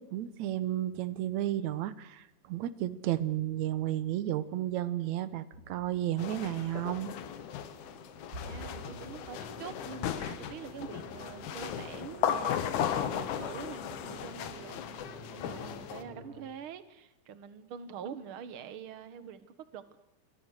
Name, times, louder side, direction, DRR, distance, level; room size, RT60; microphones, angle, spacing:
voice 1, 0.0-7.1, right 12 dB, 70° right, 2.2 m, -33 dB
sound 1, 5.5-16.4, right 1 dB, 35° right, 6.2 m, -49 dB
sound 2, 6.2-16.0, left 9 dB, 75° left, 2.7 m, -36 dB
voice 2, 8.4-20.0, right 7 dB, 55° right, 1.8 m, -45 dB
27.0 x 22.5 x 6.5 m
omnidirectional pair, 3.5 m